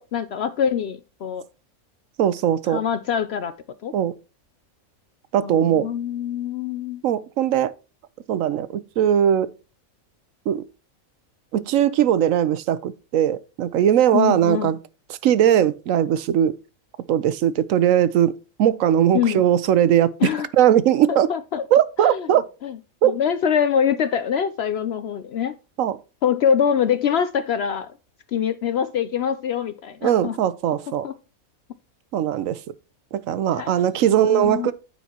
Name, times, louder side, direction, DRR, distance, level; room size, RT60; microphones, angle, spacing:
voice 1, 0.0-1.4 2.7-3.5 3.8-3.9 5.4-7.0 14.1-14.7 19.1-19.4 20.2-20.5 21.1-21.6 22.0-22.3 22.6-22.8 23.0-25.6 26.2-27.9 28.3-30.4 31.0-31.1 33.6-34.7, left 8 dB, 65° left, 0.6 m, -24 dB
voice 2, 2.2-2.8 3.9-4.1 5.3-5.9 7.0-7.7 8.3-9.5 10.5-10.6 11.5-14.8 15.1-16.5 17.1-18.3 18.6-20.1 20.6-21.3 21.7-22.4 23.0-23.1 25.8-26.0 30.0-31.1 32.1-32.6 33.1-34.7, right 10 dB, 70° right, 0.9 m, -19 dB
13.5 x 4.6 x 2.8 m
omnidirectional pair, 1.5 m